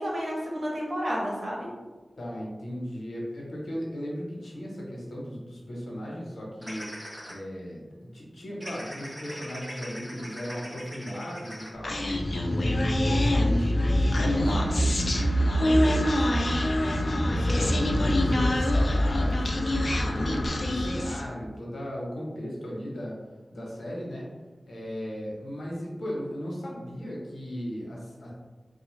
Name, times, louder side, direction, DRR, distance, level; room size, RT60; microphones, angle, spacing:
voice 1, 0.0-1.7 17.5-17.8, equal, 60° right, -4 dB, 1.1 m, -31 dB
voice 2, 2.2-6.9 7.3-12.0 12.5-16.7 17.2-23.2 23.5-24.3 24.7-28.3, equal, 90° left, -4 dB, 0.9 m, -36 dB
sound 1, 6.6-7.3 8.6-11.7, equal, 10° right, 1.0 m, -41 dB
Human voice, 11.8-21.3, left 1 dB, 60° left, 0.4 m, -24 dB
3.8 x 2.3 x 3.1 m, 1.3 s
wide cardioid pair, 55°, 0 cm